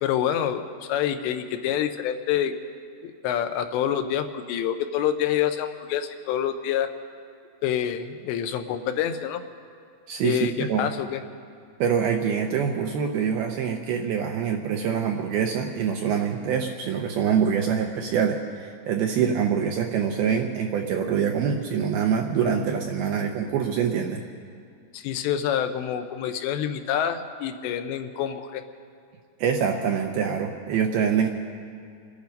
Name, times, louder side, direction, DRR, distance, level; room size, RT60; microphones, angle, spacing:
voice 1, 0.0-2.5 3.0-6.9 7.6-9.4 10.2-11.2 22.4-22.6 24.9-28.6, left 9 dB, 85° left, 7 dB, 2.9 m, -27 dB
voice 2, 10.1-10.9 11.8-24.2 29.4-31.3, right 7 dB, 80° right, 3 dB, 2.2 m, -25 dB
26.5 x 10.5 x 5.2 m, 2.4 s
omnidirectional pair, 5.1 m